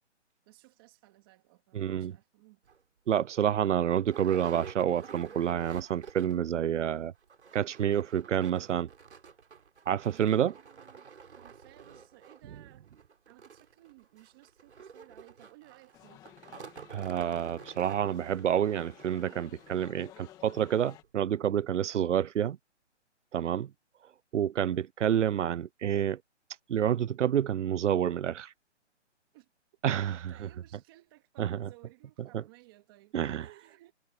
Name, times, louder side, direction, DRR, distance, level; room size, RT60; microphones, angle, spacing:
voice 1, 0.5-2.6 9.9-12.9 13.3-16.2 23.3-23.7 29.3-29.5 29.8-33.9, right 21 dB, 20° right, 2.4 m, -58 dB
voice 2, 1.7-2.2 3.1-7.1 7.5-8.9 9.9-10.5 16.9-22.6 23.3-23.7 24.3-26.2 26.7-28.5 29.8-30.5 31.4-31.7 32.3-32.4 33.1-33.5, right 9 dB, 85° right, 0.6 m, -28 dB
sound 1, 2.7-2.8 3.3-3.4 3.6-6.5 6.8-6.9 7.2-20.0 20.6-20.7 21.0-21.1, right 6 dB, 70° right, 3.6 m, -50 dB
sound 2, 15.9-21.0, left 13 dB, 10° left, 1.7 m, -54 dB
hypercardioid pair, 170°, 35 cm